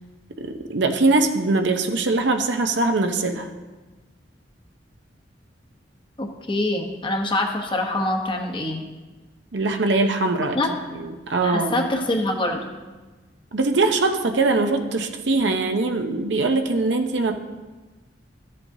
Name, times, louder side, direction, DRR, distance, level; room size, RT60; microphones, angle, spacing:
voice 1, 0.4-3.5 9.5-10.6 10.9-11.8 13.5-17.3, right 3 dB, 75° right, 6 dB, 0.7 m, -22 dB
voice 2, 6.2-8.8 10.5-10.7 11.4-12.7, left 1 dB, 25° left, 3 dB, 1.0 m, -25 dB
13.5 x 7.6 x 2.7 m, 1.2 s
head